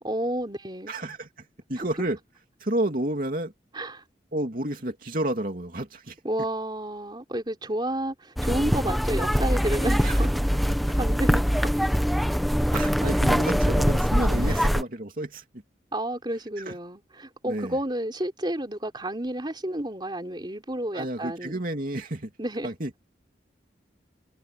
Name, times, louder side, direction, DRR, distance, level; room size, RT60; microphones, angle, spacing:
voice 1, 0.0-0.9 1.8-1.9 3.7-4.0 6.2-10.3 10.9-11.9 14.4-14.6 15.9-21.6 22.4-22.7, right 1 dB, 25° right, 3.7 m, -31 dB
voice 2, 0.9-1.3 1.7-2.2 2.6-3.5 4.3-6.2 10.0-10.2 12.7-15.4 16.6-16.7 17.4-17.8 20.9-22.3 22.6-22.9, right 1 dB, 50° right, 2.8 m, -30 dB
sound 1, 8.4-14.8, equal, ahead, 1.0 m, -23 dB
head